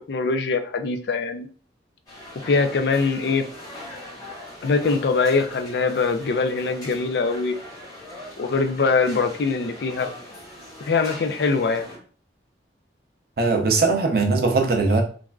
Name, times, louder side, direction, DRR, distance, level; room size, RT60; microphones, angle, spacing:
voice 1, 0.1-1.5 2.4-3.4 4.6-7.6 8.4-10.1 10.8-11.9, left 4 dB, 65° left, 7 dB, 0.4 m, -22 dB
sound 1, 2.1-12.0, left 1 dB, 20° left, 1.1 m, -41 dB
voice 2, 13.4-15.0, right 3 dB, 55° right, 3 dB, 0.5 m, -20 dB
3.2 x 2.4 x 2.3 m, 0.41 s
head